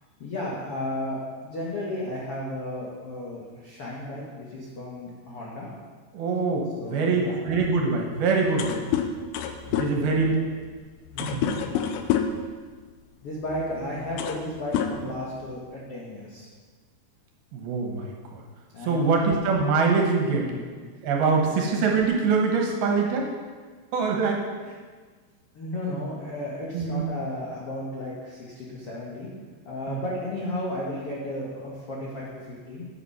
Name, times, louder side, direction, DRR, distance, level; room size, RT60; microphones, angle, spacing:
voice 1, 0.2-5.7 6.8-7.4 9.9-10.1 10.3-10.4 11.1-11.5 13.2-16.5 18.7-19.2 20.3-20.7 21.5-21.6 25.5-29.3 29.6-32.9, left 1 dB, 65° left, -5 dB, 1.4 m, -34 dB
voice 2, 6.1-8.8 9.7-10.3 11.2-11.6 17.5-18.4 18.8-20.5 21.0-23.3 23.9-24.7 26.7-27.0 29.9-30.0, right 4 dB, 70° right, 1 dB, 2.8 m, -24 dB
sound 1, 8.2-8.3 8.5-12.5 13.5-13.6 14.0-14.5 14.7-15.6, left 9 dB, 85° left, 2.7 m, -28 dB
10.0 x 8.0 x 5.6 m, 1.5 s
omnidirectional pair, 5.0 m